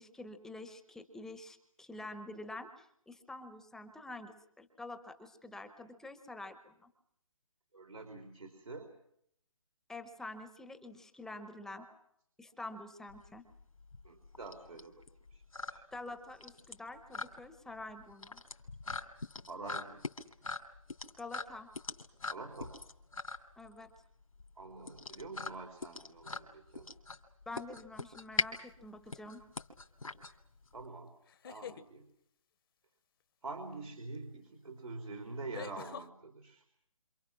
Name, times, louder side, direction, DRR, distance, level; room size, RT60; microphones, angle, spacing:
voice 1, 0.0-6.9 9.9-11.9 12.4-13.4 15.9-18.4 21.2-21.7 23.6-23.9 27.5-29.4, left 2 dB, 5° left, 8 dB, 0.9 m, -47 dB
voice 2, 7.7-8.9 11.8-11.9 14.0-15.0 15.3-15.4 15.7-15.9 19.5-20.0 22.3-22.8 24.6-26.9 30.7-31.1 31.4-32.1 33.4-36.6, right 3 dB, 85° right, 3 dB, 3.6 m, -46 dB
sound 1, 13.1-30.9, left 3 dB, 85° left, 2.9 m, -42 dB
sound 2, 28.7-29.1 31.2-31.9 34.1-34.2 35.5-36.1, left 9 dB, 40° left, 1.0 m, -46 dB
27.5 x 27.0 x 6.1 m, 0.72 s
figure-of-eight pair, 150°, 18 cm